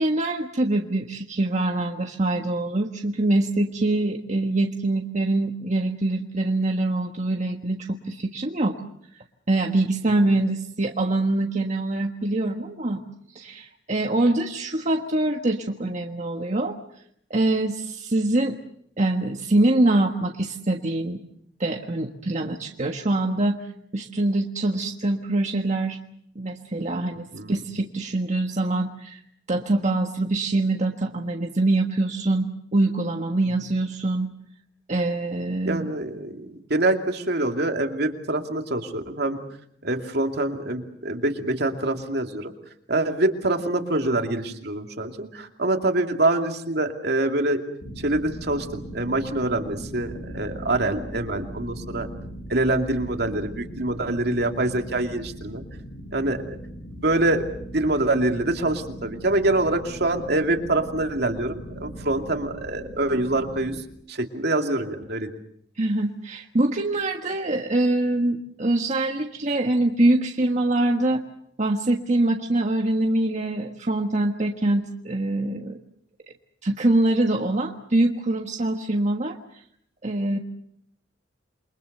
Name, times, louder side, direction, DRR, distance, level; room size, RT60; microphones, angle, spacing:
voice 1, 0.0-8.8 9.5-13.0 13.3-16.8 17.3-18.6 19.0-21.2 21.6-23.6 23.9-26.0 26.3-29.2 29.5-34.3 34.9-35.9 65.8-71.2 71.6-75.8 76.6-79.4 80.0-80.4, right 2 dB, 40° right, 3 dB, 1.4 m, -24 dB
voice 2, 35.6-39.4 39.8-42.5 42.9-47.6 48.0-52.1 52.5-55.6 56.1-56.6 57.0-57.4 57.7-63.8 64.1-65.3, right 2 dB, 65° right, 4 dB, 2.6 m, -25 dB
sound 1, 47.8-63.8, equal, 70° left, 3.2 m, -39 dB
28.5 x 23.5 x 6.7 m, 0.68 s
head